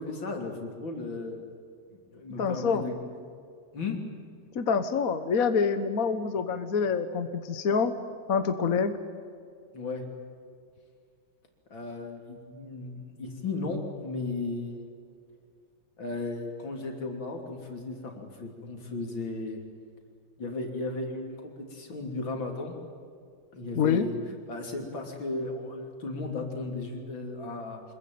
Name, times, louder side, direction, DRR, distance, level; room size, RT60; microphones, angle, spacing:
voice 1, 0.0-1.4 1.9-2.9 3.7-4.0 9.7-10.0 11.7-14.9 16.0-19.6 20.4-22.8 23.5-24.2 24.5-27.8, left 3 dB, 65° left, 3 dB, 4.0 m, -35 dB
voice 2, 2.4-2.8 4.5-7.9 8.3-8.9 23.8-24.0, left 6 dB, 50° left, 10 dB, 1.4 m, -26 dB
26.0 x 21.5 x 9.4 m, 2.2 s
omnidirectional pair, 2.3 m